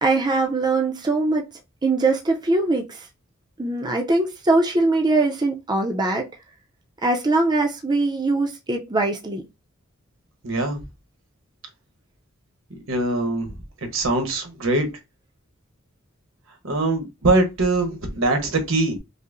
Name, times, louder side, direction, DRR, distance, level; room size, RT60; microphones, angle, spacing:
voice 1, 0.0-1.5 1.8-3.0 3.6-6.3 7.0-9.4, right 2 dB, 20° right, 0.4 m, -21 dB
voice 2, 10.4-10.8 12.9-13.5 13.9-14.9 16.6-19.0, right 2 dB, 75° right, 1.0 m, -22 dB
5.3 x 2.0 x 2.5 m
head